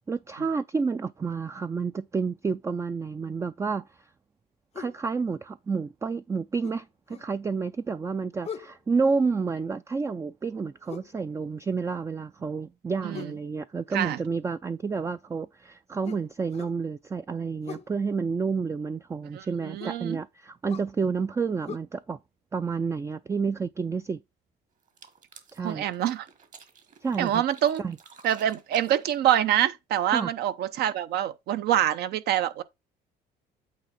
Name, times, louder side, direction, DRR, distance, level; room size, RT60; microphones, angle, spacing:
voice 1, 0.1-3.9 4.8-22.2 22.5-24.2 25.5-25.9 27.0-27.4 27.8-28.0 30.1-30.3, right 5 dB, 15° right, 0.3 m, -30 dB
sound 1, 4.7-5.0 6.6-7.3 8.4-8.8 10.9-11.1 13.1-13.4 16.0-16.8 17.6-17.9 19.8-20.0 20.7-20.9 21.7-21.8, left 8 dB, 40° left, 0.5 m, -41 dB
voice 2, 19.3-20.2 25.6-26.3 27.2-27.8 28.2-32.6, right 11 dB, 75° right, 0.8 m, -26 dB
sound 2, 24.8-29.7, right 6 dB, 50° right, 1.6 m, -52 dB
8.7 x 3.2 x 5.2 m
cardioid pair, 110°, 17 cm